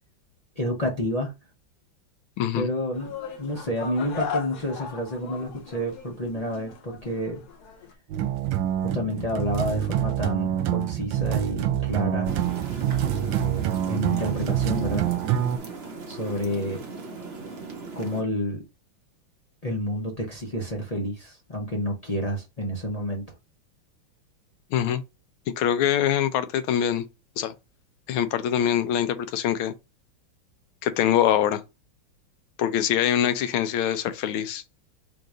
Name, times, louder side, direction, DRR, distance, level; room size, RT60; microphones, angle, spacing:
voice 1, 0.6-1.3 2.5-7.4 8.8-12.3 13.4-15.1 16.1-16.8 18.0-18.6 19.6-23.2, equal, 35° left, 0.5 m, -29 dB
voice 2, 2.4-2.7 24.7-25.0 25.6-27.0 27.4-27.5 28.1-29.7 30.8-31.6 32.6-34.6, left 10 dB, 85° left, 1.5 m, -24 dB
sound 1, 2.9-7.9, left 6 dB, 60° left, 1.2 m, -37 dB
sound 2, 8.1-15.6, right 11 dB, 75° right, 1.2 m, -26 dB
sound 3, 12.2-18.2, right 4 dB, 50° right, 0.7 m, -37 dB
3.8 x 2.7 x 4.8 m
omnidirectional pair, 2.2 m